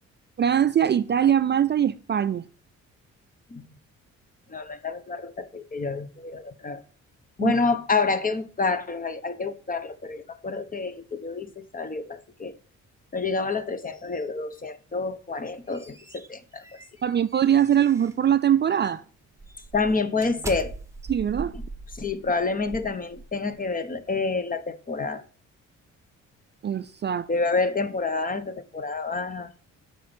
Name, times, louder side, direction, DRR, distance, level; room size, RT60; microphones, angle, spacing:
voice 1, 0.4-2.4 7.4-7.5 17.0-19.0 21.1-21.5 26.6-27.3, right 9 dB, 35° right, 0.4 m, -22 dB
voice 2, 4.5-6.8 7.4-12.6 13.1-16.8 19.7-20.7 21.5-21.6 21.9-25.2 27.3-29.5, left 4 dB, 30° left, 1.0 m, -28 dB
sound 1, 15.3-18.2 18.7-19.0 19.4-23.6, right 2 dB, 10° right, 1.1 m, -41 dB
8.3 x 5.5 x 4.3 m
cardioid pair, 90°, 30 cm